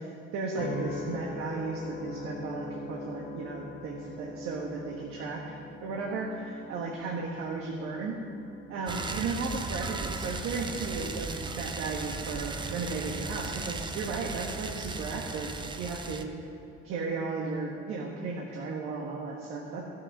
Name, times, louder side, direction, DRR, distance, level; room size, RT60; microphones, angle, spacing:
voice 1, 0.3-5.4 5.8-8.2 8.7-16.3 16.8-19.9, right 4 dB, 80° right, -1 dB, 1.4 m, -35 dB
sound 1, 0.6-15.1 15.6-16.0, left 2 dB, 50° left, 1.6 m, -44 dB
sound 2, 8.9-16.2, right 3 dB, 20° right, 0.6 m, -36 dB
13.5 x 6.6 x 7.3 m, 2.7 s
cardioid pair, 130°, 21 cm